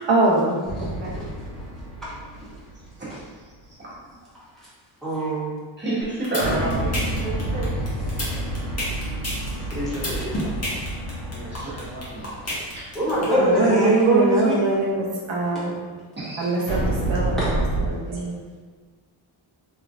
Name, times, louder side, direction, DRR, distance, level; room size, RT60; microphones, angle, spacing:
voice 1, 0.1-1.2 13.4-15.8 16.4-18.4, right 2 dB, 70° right, -5 dB, 0.9 m, -23 dB
sound 1, 0.6-3.2 6.4-13.6 16.7-17.9, right 1 dB, 70° left, 1.3 m, -29 dB
voice 2, 5.0-5.6 9.7-10.5 12.4-12.6 12.9-14.6 17.4-17.5, right 1 dB, ahead, -11 dB, 1.3 m, -23 dB
voice 3, 5.8-7.7 8.1-8.4 11.3-12.4 16.2-16.5 16.8-16.9, right 2 dB, 25° right, -8 dB, 1.2 m, -30 dB
sound 2, 6.0-13.2, left 1 dB, 35° left, 1.1 m, -29 dB
3.6 x 3.2 x 2.5 m, 1.5 s
wide cardioid pair, 145°, 46 cm